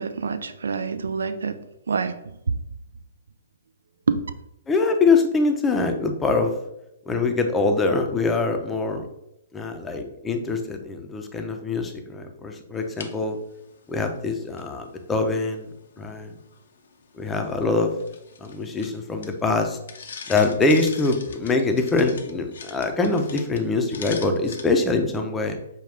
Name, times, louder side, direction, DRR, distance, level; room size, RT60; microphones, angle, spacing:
voice 1, 0.0-1.6 1.9-2.2 2.5-2.6 4.1-4.2, right 5 dB, 75° right, 10 dB, 0.3 m, -26 dB
voice 2, 4.7-6.5 7.1-9.1 9.5-13.4 13.9-15.7 16.0-16.3 17.2-17.9 18.4-19.8 20.3-25.6, left 3 dB, 15° left, 4 dB, 0.6 m, -23 dB
sound 1, 12.8-24.6, left 5 dB, 70° left, 0.6 m, -44 dB
5.4 x 2.3 x 3.5 m, 0.84 s
hypercardioid pair, 120°, 0 cm